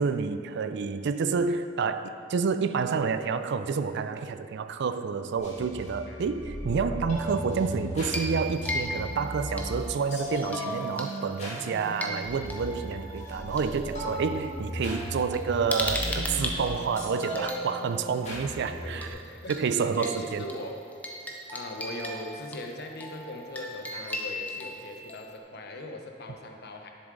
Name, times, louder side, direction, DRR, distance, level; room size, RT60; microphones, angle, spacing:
voice 1, 0.0-19.2 19.5-20.4, right 5 dB, 60° right, 11 dB, 0.4 m, -29 dB
sound 1, 5.4-19.1, equal, 35° left, 1.9 m, -36 dB
sound 2, 8.0-10.0 10.4-11.1 11.4-13.6 14.5-14.6 14.9-17.6 19.0-19.2 19.5-19.6 20.0-25.4, left 1 dB, 10° left, 0.8 m, -37 dB
voice 2, 18.8-20.9 21.5-26.9, left 1 dB, 55° left, 3 dB, 0.9 m, -40 dB
10.5 x 7.0 x 3.9 m, 2.4 s
head